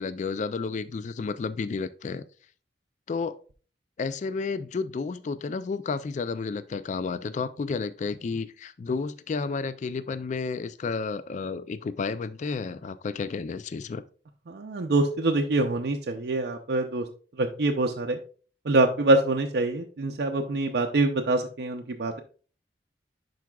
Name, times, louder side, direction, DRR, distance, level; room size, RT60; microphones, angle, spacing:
voice 1, 0.0-2.2 3.1-3.4 4.0-14.0, left 4 dB, 40° left, 14 dB, 0.3 m, -31 dB
voice 2, 14.5-17.1 17.4-18.2 18.7-22.2, right 2 dB, 60° right, 3 dB, 0.5 m, -25 dB
10.5 x 4.7 x 2.3 m, 0.40 s
head